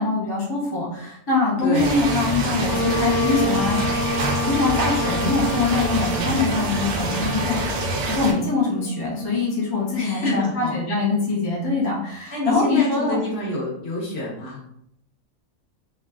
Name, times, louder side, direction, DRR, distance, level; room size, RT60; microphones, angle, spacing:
voice 1, 0.0-3.8 4.4-7.6 8.0-13.2, left 3 dB, 30° left, -5 dB, 0.4 m, -23 dB
voice 2, 1.6-2.0 10.0-10.8 12.3-14.6, left 1 dB, 50° left, -5 dB, 1.1 m, -27 dB
sound 1, 1.7-8.3, right 2 dB, 75° right, 1.0 m, -26 dB
Wind instrument woodwind instrument, 2.6-10.1, left 1 dB, 75° left, 1.0 m, -29 dB
3.1 x 2.3 x 2.2 m, 0.74 s
omnidirectional pair, 1.5 m